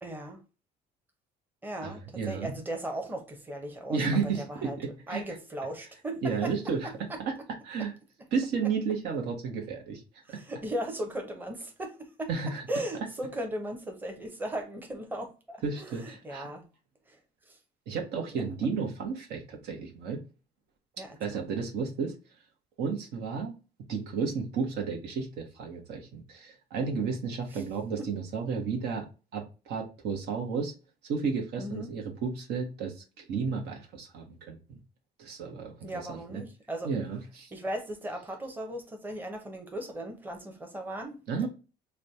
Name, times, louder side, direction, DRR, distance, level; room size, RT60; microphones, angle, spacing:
voice 1, 0.0-0.4 1.6-4.0 4.4-4.8 5.1-6.5 7.1-7.2 10.3-12.3 12.7-16.7 17.1-17.2 17.5-17.6 18.3-18.5 21.0-21.4 27.5-27.6 28.0-28.1 31.6-31.9 35.8-36.9 37.5-41.5, right 1 dB, 10° right, 0.8 m, -37 dB
voice 2, 1.8-2.5 3.9-5.2 6.2-6.9 7.3-7.4 7.6-7.9 8.3-10.0 10.3-10.4 12.3-12.6 15.6-16.5 17.9-20.2 21.2-22.1 22.8-23.6 23.9-29.1 29.3-30.7 31.0-34.8 35.2-36.4 36.8-37.5 41.3-41.5, right 5 dB, 75° right, 1.1 m, -32 dB
3.2 x 2.2 x 3.9 m
cardioid pair, 110°, 17 cm